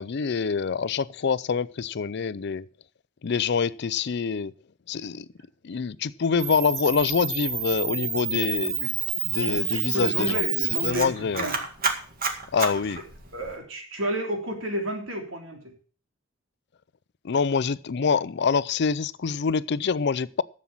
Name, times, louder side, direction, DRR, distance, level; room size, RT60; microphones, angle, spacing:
voice 1, 0.0-2.7 3.2-4.5 4.9-5.3 5.6-8.8 9.2-10.4 10.7-11.5 12.5-13.0 17.2-20.4, left 5 dB, 60° left, 0.5 m, -26 dB
Camera, 6.4-13.5, right 6 dB, 50° right, 2.1 m, -29 dB
voice 2, 9.4-11.6 12.7-12.8 13.3-15.7, right 1 dB, 90° right, 3.4 m, -32 dB
11.0 x 7.5 x 7.3 m
head